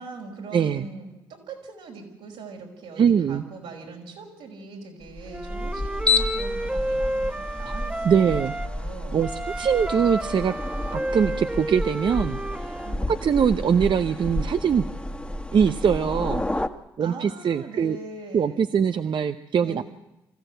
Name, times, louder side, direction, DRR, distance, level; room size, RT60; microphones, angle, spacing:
voice 1, 0.0-9.2 12.8-13.2 17.0-18.7 19.6-19.8, right 4 dB, 80° right, -1 dB, 5.1 m, -41 dB
voice 2, 0.5-0.8 3.0-3.4 7.7-7.8 8.0-8.5 9.1-9.3 9.6-10.5 10.9-12.7 13.1-14.8 15.5-16.4 17.0-18.0 18.3-19.8, right 7 dB, 55° right, 9 dB, 0.7 m, -22 dB
sound 1, 5.1-16.7, left 2 dB, 10° left, 1.6 m, -30 dB
Wind instrument woodwind instrument, 5.3-8.7 9.2-13.0, right 1 dB, 10° right, 1.2 m, -31 dB
25.0 x 15.0 x 7.9 m, 0.93 s
hypercardioid pair, 45°, 10 cm